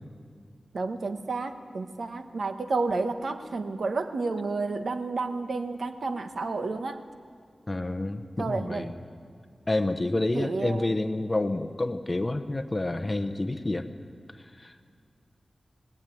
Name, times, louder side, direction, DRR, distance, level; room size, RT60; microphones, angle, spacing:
voice 1, 0.7-7.0 8.4-8.9 10.3-10.9, right 3 dB, 75° right, 7 dB, 1.3 m, -31 dB
voice 2, 7.7-8.9 9.7-13.9 14.3-14.8, left 2 dB, 30° left, 7 dB, 1.1 m, -29 dB
19.5 x 18.5 x 9.4 m, 2.2 s
wide cardioid pair, 70°, 0 cm